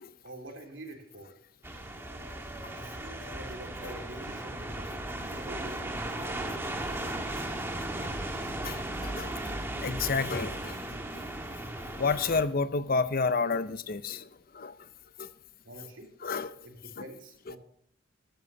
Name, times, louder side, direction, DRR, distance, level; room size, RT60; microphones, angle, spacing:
voice 1, 0.2-1.3 2.7-6.7 15.6-16.1 16.6-17.6, right 1 dB, 70° right, 3.1 m, -46 dB
sound 1, 1.6-12.4, right 1 dB, 10° right, 1.5 m, -36 dB
voice 2, 8.6-9.4 9.8-10.8 12.0-14.8 15.2-15.3 16.2-16.6 17.0-17.1, left 4 dB, 45° left, 0.6 m, -30 dB
14.5 x 12.5 x 2.7 m
head